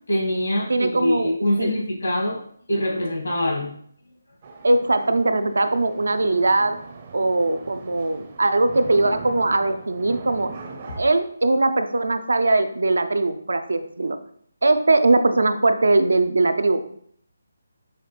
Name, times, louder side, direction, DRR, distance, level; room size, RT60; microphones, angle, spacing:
voice 1, 0.1-2.4 2.7-3.7, left 1 dB, 85° left, -1 dB, 1.7 m, -24 dB
voice 2, 0.7-1.3 1.6-1.7 4.6-6.8 7.1-10.5 11.0-14.2 14.6-16.8, right 2 dB, 85° right, 9 dB, 0.4 m, -20 dB
sound 1, 4.4-11.0, right 4 dB, 35° right, 0.5 m, -40 dB
5.5 x 2.5 x 3.2 m, 0.63 s
figure-of-eight pair, 165°, 0 cm